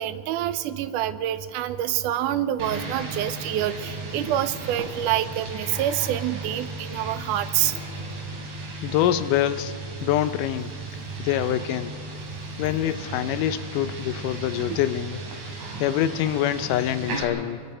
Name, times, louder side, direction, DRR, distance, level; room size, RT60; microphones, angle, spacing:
voice 1, 0.0-7.7 14.7-14.8, right 12 dB, 80° right, 12 dB, 2.2 m, -27 dB
sound 1, 2.6-17.2, right 2 dB, 65° right, 4.1 m, -35 dB
voice 2, 8.8-10.7 11.2-12.0 12.6-15.2 15.8-17.6, left 11 dB, 85° left, 13 dB, 2.2 m, -25 dB
28.0 x 22.0 x 4.4 m, 2.1 s
omnidirectional pair, 3.7 m